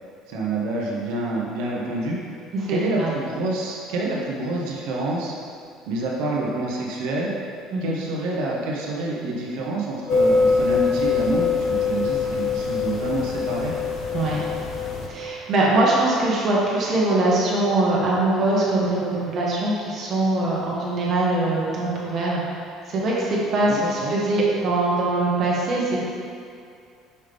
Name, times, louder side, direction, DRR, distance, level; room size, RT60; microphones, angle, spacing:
voice 1, 0.3-2.2 2.7-5.3 5.9-7.3 7.8-13.7 23.6-24.1, right 2 dB, 85° right, -3 dB, 0.9 m, -27 dB
voice 2, 2.5-3.1 7.7-7.8 14.1-14.4 15.1-26.0, right 2 dB, 40° right, -4 dB, 1.3 m, -22 dB
sound 1, 10.1-15.1, left 4 dB, 40° left, 0.7 m, -23 dB
5.6 x 5.3 x 3.4 m, 2.4 s
cardioid pair, 145°, 0 cm